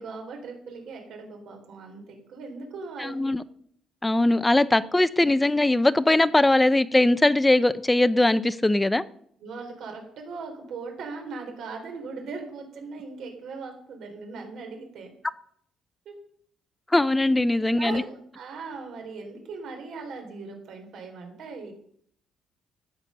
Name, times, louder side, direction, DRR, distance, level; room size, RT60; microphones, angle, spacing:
voice 1, 0.0-3.4 9.4-15.1 16.1-16.2 17.7-21.7, right 4 dB, 60° right, 3 dB, 3.7 m, -39 dB
voice 2, 3.0-3.4 4.0-9.0 16.9-18.0, left 2 dB, 10° left, 14 dB, 0.4 m, -21 dB
13.5 x 8.4 x 6.5 m, 0.66 s
cardioid pair, 170°, 0 cm